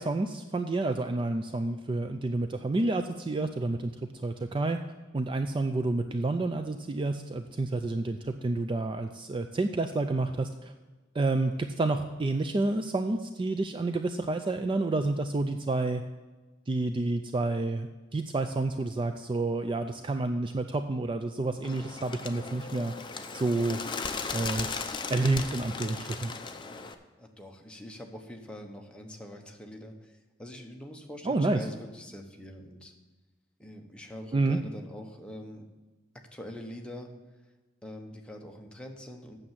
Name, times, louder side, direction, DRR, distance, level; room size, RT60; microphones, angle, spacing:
voice 1, 0.0-4.8 5.1-10.7 11.1-16.0 16.7-22.9 23.3-23.8 24.3-24.7 25.1-26.3 31.2-31.6 34.3-34.6, right 2 dB, 25° right, 7 dB, 0.4 m, -29 dB
Bird, 21.6-26.9, left 4 dB, 25° left, 0.6 m, -37 dB
voice 2, 27.2-32.9 33.6-35.7 36.1-37.1 37.4-37.5 37.8-39.4, equal, 5° left, 2 dB, 0.9 m, -44 dB
8.6 x 6.6 x 7.4 m, 1.2 s
head